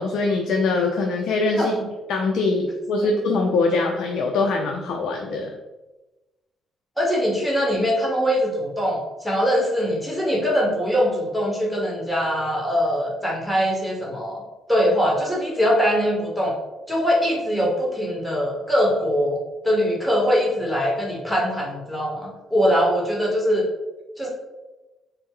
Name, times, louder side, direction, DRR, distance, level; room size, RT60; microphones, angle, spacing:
voice 1, 0.0-1.7 2.1-5.5, left 3 dB, 75° left, 2 dB, 0.4 m, -23 dB
voice 2, 7.0-14.4 14.7-16.5 16.9-19.4 19.6-23.7 24.2-24.3, equal, ahead, -3 dB, 1.0 m, -22 dB
4.1 x 2.0 x 3.6 m, 1.1 s
cardioid pair, 90°, 0 cm